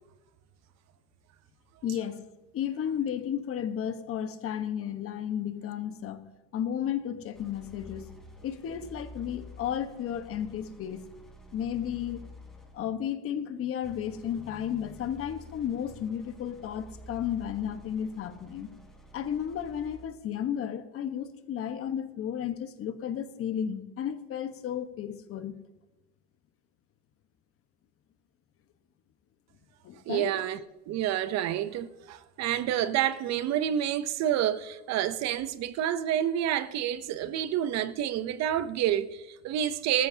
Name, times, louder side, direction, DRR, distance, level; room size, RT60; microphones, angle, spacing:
voice 1, 1.8-2.2 2.5-6.2 6.5-8.0 8.4-11.1 11.5-12.2 12.7-18.7 19.1-25.6 29.8-30.4, left 9 dB, 45° left, 1.2 m, -33 dB
sound 1, 7.3-12.9 13.8-20.2, left 1 dB, ahead, 3.8 m, -50 dB
voice 2, 30.1-40.1, right 11 dB, 55° right, 0.7 m, -29 dB
19.0 x 14.5 x 2.8 m
supercardioid pair, 110°, 32 cm